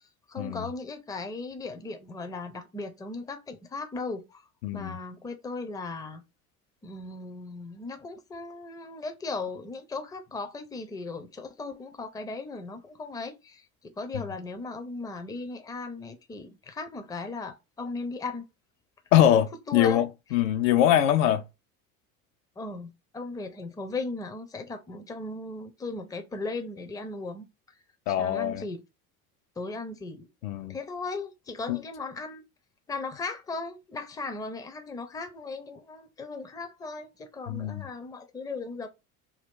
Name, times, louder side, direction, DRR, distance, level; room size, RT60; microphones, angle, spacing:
voice 1, 0.3-4.4 4.7-6.2 6.8-18.5 19.7-20.0 22.6-27.5 28.1-28.8 29.6-30.3 30.7-32.4 32.9-38.9, left 3 dB, 10° left, 0.5 m, -37 dB
voice 2, 4.6-5.0 19.1-21.4 28.1-28.6 30.4-30.8 31.7-31.8 37.5-37.8, left 11 dB, 65° left, 0.5 m, -23 dB
2.8 x 2.3 x 3.6 m
hypercardioid pair, 70°, 44 cm